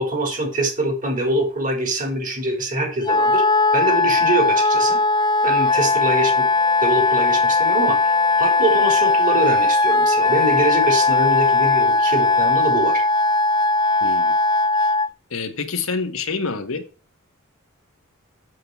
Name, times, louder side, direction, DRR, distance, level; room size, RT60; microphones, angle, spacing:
voice 1, 0.0-3.4 3.7-5.0 5.4-6.4 6.8-13.0, right 1 dB, 40° right, 4.0 m, -24 dB
Wind instrument woodwind instrument, 3.0-15.1, left 3 dB, 20° left, 0.4 m, -18 dB
voice 2, 14.0-14.4 15.3-16.9, left 4 dB, 85° left, 1.4 m, -27 dB
7.8 x 7.6 x 4.7 m
head